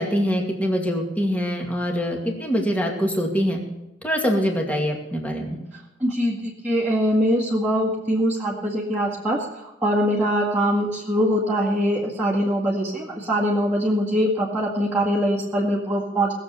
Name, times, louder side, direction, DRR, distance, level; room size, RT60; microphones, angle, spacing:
voice 1, 0.0-3.6 4.0-5.6, equal, 10° left, 1 dB, 2.2 m, -24 dB
voice 2, 6.0-16.3, equal, 10° right, -8 dB, 2.0 m, -23 dB
19.0 x 7.5 x 6.8 m, 0.97 s
head